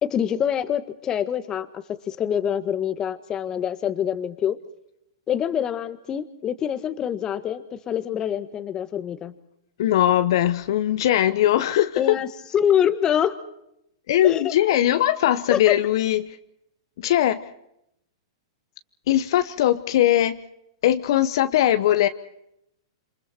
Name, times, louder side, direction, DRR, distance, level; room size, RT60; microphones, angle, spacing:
voice 1, 0.0-4.6 5.3-9.3 12.0-12.3 12.5-13.4 14.2-14.4 15.5-15.8, left 9 dB, 25° left, 11 dB, 1.6 m, -25 dB
voice 2, 9.8-12.2 14.1-16.4 17.0-17.4 19.1-20.4 20.8-22.1, left 12 dB, 60° left, 11 dB, 1.1 m, -20 dB
28.0 x 27.0 x 4.5 m, 0.78 s
hypercardioid pair, 125°, 3 cm